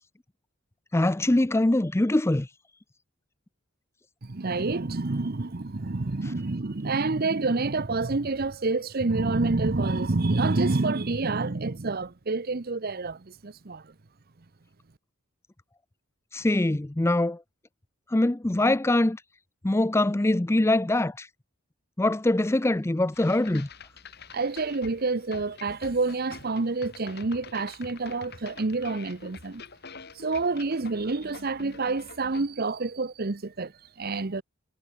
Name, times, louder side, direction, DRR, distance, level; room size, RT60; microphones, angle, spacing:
voice 1, 0.9-2.5 16.3-17.4 18.1-19.2 19.6-21.3 22.0-23.7, left 1 dB, 10° left, 0.5 m, -23 dB
voice 2, 4.2-13.9 24.3-29.6 30.1-34.4, right 3 dB, 45° right, 0.8 m, -28 dB
sound 1, 23.1-32.4, left 4 dB, 50° left, 3.5 m, -46 dB
head